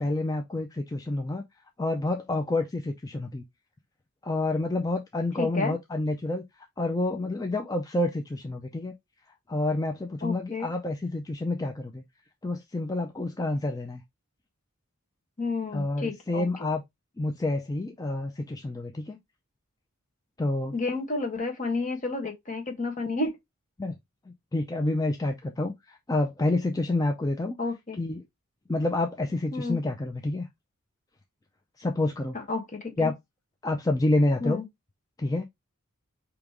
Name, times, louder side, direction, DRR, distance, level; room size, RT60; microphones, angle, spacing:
voice 1, 0.0-1.4 1.8-3.4 4.2-8.9 9.5-12.0 12.4-14.0 15.7-16.8 17.2-19.2 20.4-20.7 23.8-24.0 24.3-27.6 28.0-28.2 28.7-30.5 31.8-32.4 33.0-33.1 33.6-34.6 35.2-35.4, left 2 dB, 15° left, 0.4 m, -28 dB
voice 2, 5.4-5.7 10.2-10.7 15.4-16.5 20.7-23.4 27.6-28.0 29.5-29.8 32.3-33.1 34.4-34.6, left 3 dB, 35° left, 1.3 m, -31 dB
5.0 x 3.0 x 3.5 m
head